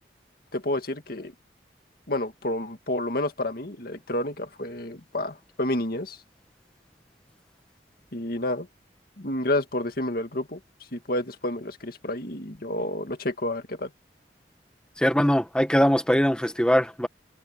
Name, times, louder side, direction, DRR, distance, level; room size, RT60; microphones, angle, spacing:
voice 1, 0.5-1.3 2.1-6.2 8.1-8.7 9.2-10.6 10.9-13.9, left 1 dB, 55° left, 2.2 m, -29 dB
voice 2, 15.0-17.1, equal, 5° left, 1.2 m, -21 dB
head